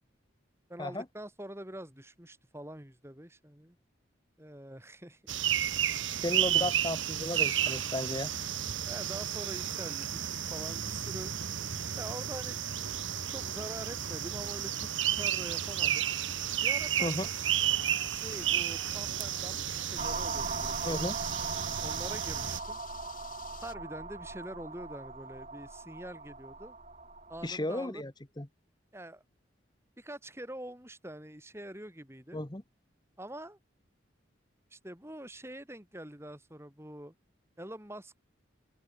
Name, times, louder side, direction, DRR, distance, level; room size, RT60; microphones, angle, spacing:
voice 1, 0.7-3.8 4.4-5.4 6.0-6.2 6.5-6.7 8.9-11.3 12.0-12.6 13.3-16.1 16.6-17.1 18.1-21.1 21.8-22.8 23.6-26.8 27.3-28.0 28.9-29.2 30.0-32.4 33.2-33.6 34.7-37.1 37.6-38.2, right 1 dB, 15° right, 3.5 m, -45 dB
sound 1, 5.3-22.6, right 10 dB, 75° right, 1.5 m, -32 dB
voice 2, 6.2-8.3 17.0-17.3 20.8-21.1 27.4-28.1 28.4-28.5 32.3-32.6, left 1 dB, 20° left, 1.1 m, -34 dB
sound 2, 16.3-23.8, left 7 dB, 45° left, 6.1 m, -52 dB
sound 3, 20.0-27.6, right 3 dB, 35° right, 6.6 m, -40 dB
open air
head